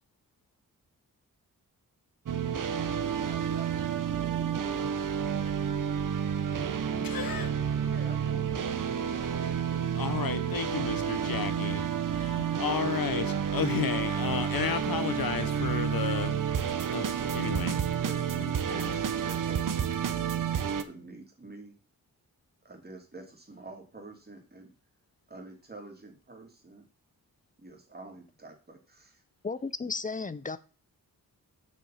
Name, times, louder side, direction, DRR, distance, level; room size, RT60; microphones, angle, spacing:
sound 1, 2.3-20.8, right 8 dB, 60° right, 0.9 m, -30 dB
voice 1, 2.5-5.0 7.8-8.7 9.0-10.1 17.4-21.8 22.6-24.7 25.3-26.8 27.6-29.2, right 3 dB, 25° right, 2.8 m, -48 dB
voice 2, 7.0-7.5 10.0-16.3 16.9-17.1 17.3-17.8 18.4-18.9, left 8 dB, 75° left, 1.1 m, -33 dB
voice 3, 29.4-30.6, left 4 dB, 25° left, 0.6 m, -34 dB
7.6 x 5.9 x 5.7 m
wide cardioid pair, 110°, 35 cm